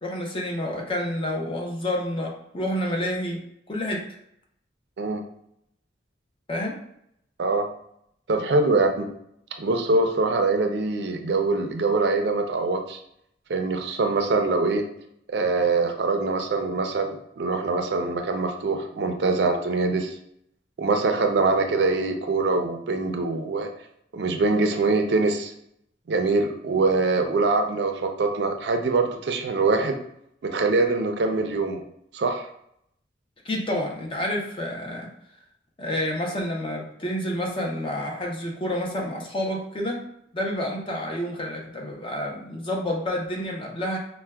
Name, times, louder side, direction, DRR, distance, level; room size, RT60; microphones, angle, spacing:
voice 1, 0.0-4.1 6.5-6.8 33.4-35.1 35.8-40.0 40.3-44.0, left 1 dB, 25° left, 0 dB, 0.5 m, -29 dB
voice 2, 8.3-9.1 9.6-13.0 13.5-14.8 15.3-20.2 20.8-23.7 24.1-25.5 26.1-30.0 30.4-31.8 32.1-32.5, right 3 dB, 65° right, 5 dB, 0.4 m, -23 dB
4.3 x 2.1 x 2.2 m, 0.73 s
head